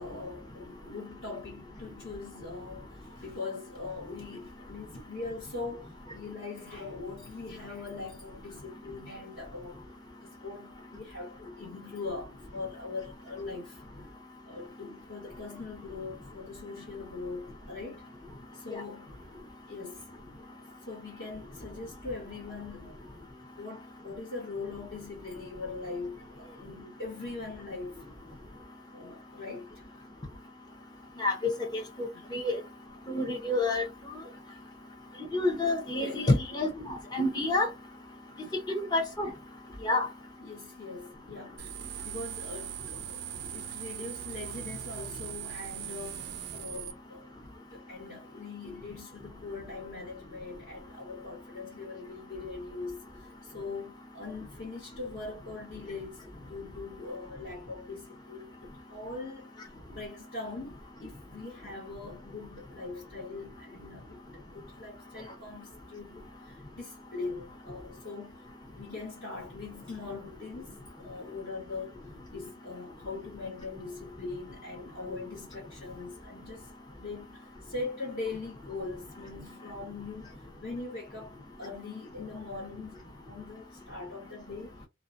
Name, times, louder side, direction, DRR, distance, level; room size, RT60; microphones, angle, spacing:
voice 1, 0.0-9.8 10.2-13.8 14.4-18.0 18.5-19.1 19.4-20.0 20.9-23.0 23.6-28.1 28.9-29.8 32.1-32.3 34.5-34.6 36.0-36.3 38.4-38.6 40.4-41.7 42.0-43.2 43.5-68.4 68.7-72.0 72.3-84.8, left 3 dB, 55° left, 1.2 m, -41 dB
voice 2, 31.2-32.6 33.1-33.8 35.3-37.7 38.7-39.3 39.8-40.1, left 2 dB, 20° left, 0.6 m, -28 dB
sound 1, 41.6-46.9, right 10 dB, 55° right, 0.3 m, -40 dB
2.3 x 2.2 x 2.4 m
head